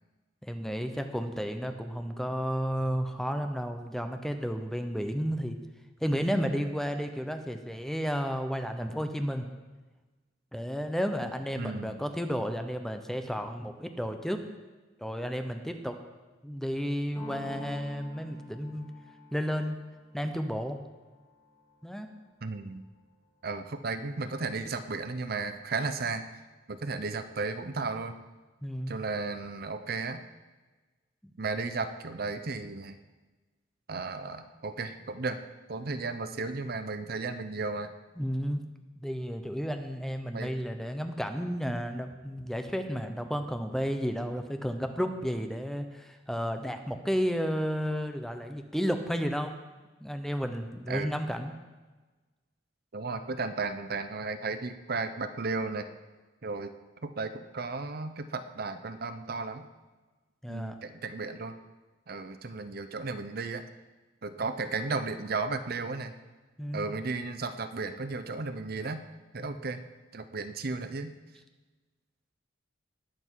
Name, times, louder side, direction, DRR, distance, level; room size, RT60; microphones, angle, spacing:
voice 1, 0.4-5.6 6.0-9.5 10.5-14.4 15.0-16.0 16.4-18.9 19.3-19.8 20.1-20.8 21.8-22.1 28.6-29.0 38.2-38.6 39.0-49.5 50.0-51.5 60.4-60.8 66.6-66.9, equal, ahead, 6 dB, 0.8 m, -32 dB
voice 2, 11.6-12.0 22.4-22.8 23.4-26.2 26.7-28.2 28.9-30.2 31.4-33.0 33.9-35.4 35.7-37.9 40.3-40.5 50.9-51.1 52.9-55.9 56.4-56.7 57.0-59.7 60.5-61.5 62.1-63.6 64.2-66.1 66.7-69.0 69.3-69.8 70.1-71.1, right 3 dB, 50° right, 10 dB, 0.7 m, -34 dB
sound 1, 17.2-22.7, equal, 25° left, 3.1 m, -48 dB
19.5 x 7.9 x 4.7 m, 1.2 s
head